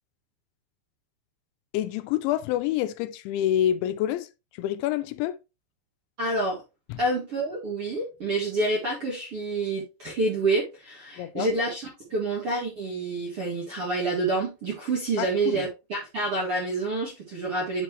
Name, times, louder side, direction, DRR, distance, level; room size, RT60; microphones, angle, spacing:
voice 1, 1.7-5.4 6.9-7.0 11.2-11.5 15.2-15.7, left 12 dB, 85° left, 3.0 m, -27 dB
voice 2, 6.2-6.6 7.0-17.8, right 2 dB, 55° right, 1.5 m, -28 dB
10.0 x 4.4 x 3.2 m
omnidirectional pair, 5.2 m